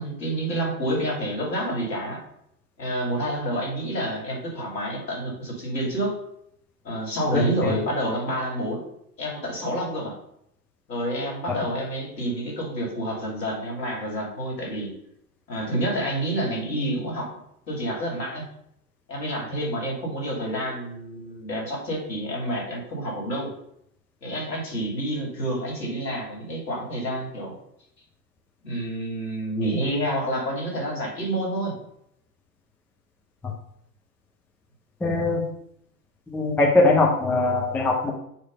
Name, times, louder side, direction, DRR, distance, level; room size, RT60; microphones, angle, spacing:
voice 1, 0.0-2.2 2.8-6.1 6.8-8.8 9.2-10.1 10.9-14.9 15.5-17.3 17.7-18.4 19.1-23.5 24.2-27.5 28.6-31.7, right 1 dB, 85° left, -1 dB, 2.9 m, -28 dB
voice 2, 7.3-7.7 35.0-35.4 36.3-38.1, left 2 dB, 5° left, -2 dB, 0.6 m, -21 dB
7.4 x 3.2 x 5.4 m, 0.72 s
figure-of-eight pair, 105°, 49 cm